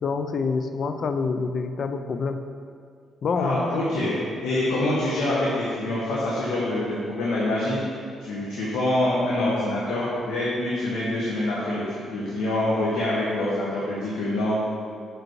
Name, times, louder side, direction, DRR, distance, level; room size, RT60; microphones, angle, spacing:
voice 1, 0.0-2.4 3.2-3.6, left 4 dB, 55° left, 7 dB, 0.5 m, -26 dB
voice 2, 3.4-4.1 4.4-7.9 8.2-14.6, left 1 dB, 85° left, -7 dB, 1.2 m, -25 dB
5.9 x 5.2 x 4.6 m, 2.2 s
cardioid pair, 90°, 0 cm